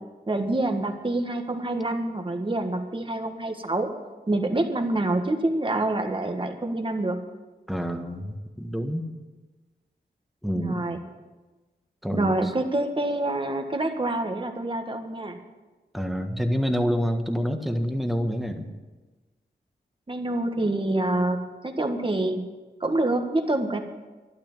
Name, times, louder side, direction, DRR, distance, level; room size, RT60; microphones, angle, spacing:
voice 1, 0.3-3.9 4.3-7.2 10.5-11.0 12.1-15.4 20.1-22.4 22.8-23.8, right 2 dB, 30° right, 5 dB, 1.7 m, -26 dB
voice 2, 7.7-9.1 10.4-10.8 12.0-12.5 15.9-18.7, equal, ahead, 4 dB, 1.6 m, -27 dB
12.5 x 11.5 x 7.5 m, 1.2 s
wide cardioid pair, 100°, 18 cm